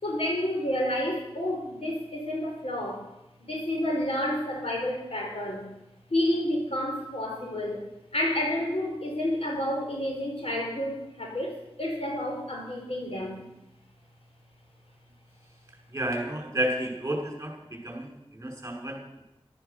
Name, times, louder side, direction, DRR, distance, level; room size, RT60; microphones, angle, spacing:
voice 1, 0.0-3.1 3.4-5.7 6.1-7.9 8.1-13.4, left 1 dB, 75° left, 1 dB, 4.7 m, -30 dB
voice 2, 15.9-19.2, right 1 dB, 25° right, 0 dB, 5.6 m, -32 dB
14.0 x 12.5 x 6.8 m, 0.92 s
wide cardioid pair, 40°, 10 cm